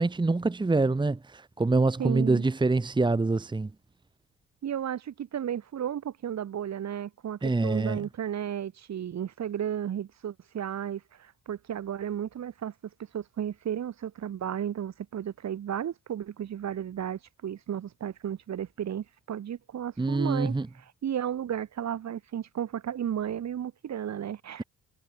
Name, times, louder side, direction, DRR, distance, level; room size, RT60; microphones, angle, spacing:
voice 1, 0.0-3.7 7.4-8.1 20.0-20.7, right 3 dB, 15° right, 1.3 m, -25 dB
voice 2, 2.0-2.4 4.6-12.7 13.1-20.5 21.0-24.6, right 9 dB, 60° right, 6.6 m, -33 dB
cardioid pair, 90°, 30 cm